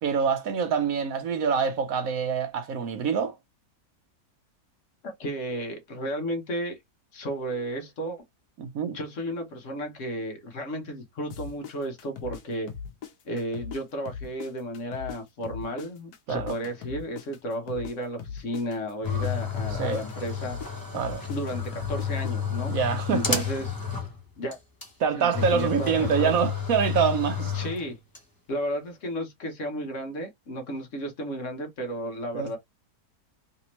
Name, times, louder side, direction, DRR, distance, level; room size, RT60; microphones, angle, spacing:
voice 1, 0.0-3.4 8.6-9.0 16.3-16.5 19.8-20.0 20.9-21.2 22.7-23.4 25.0-27.5 32.3-32.6, right 6 dB, 65° right, 1.0 m, -25 dB
voice 2, 5.0-6.8 7.1-8.2 8.8-12.7 13.2-20.8 21.3-22.7 23.1-23.7 24.4-24.6 25.2-26.4 27.5-28.0 28.5-32.6, equal, 55° left, 1.2 m, -33 dB
sound 1, 11.3-13.8 14.0-17.9 18.2-22.3, left 7 dB, 75° left, 1.3 m, -39 dB
sound 2, 19.0-24.2 24.5-24.6 24.8-24.9 25.3-28.2, left 6 dB, 20° left, 0.6 m, -31 dB
3.3 x 2.8 x 3.0 m
omnidirectional pair, 1.7 m